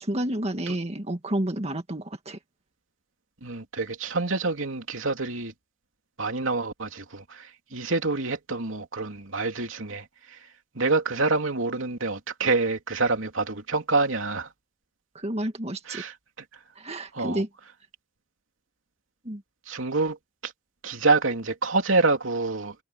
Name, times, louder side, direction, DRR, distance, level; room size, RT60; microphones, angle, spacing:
voice 1, 0.0-2.4 15.1-16.0 16.8-17.5 19.2-19.4, right 1 dB, 35° right, 2.0 m, -30 dB
voice 2, 3.4-5.5 6.2-10.5 10.7-14.5 15.9-16.1 17.1-17.4 19.7-20.2 20.4-20.5 20.8-22.7, right 3 dB, 80° right, 3.0 m, -27 dB
head